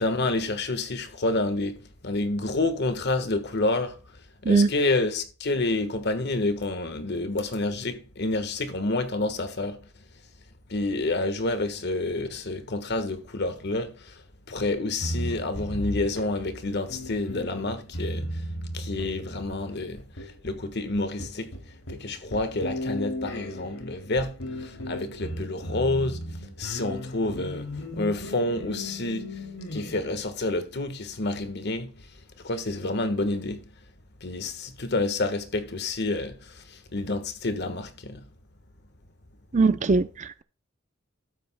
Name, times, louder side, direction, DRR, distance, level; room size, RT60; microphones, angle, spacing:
voice 1, 0.0-4.0 4.4-9.8 10.7-14.2 14.5-18.4 18.7-21.6 21.9-26.2 26.6-29.5 29.7-32.1 32.4-33.6 34.2-38.2, left 2 dB, 55° left, 1.4 m, -29 dB
sound 1, 15.0-30.2, equal, 85° left, 2.9 m, -36 dB
voice 2, 39.5-40.4, right 3 dB, 35° right, 0.5 m, -21 dB
12.5 x 8.7 x 2.2 m
head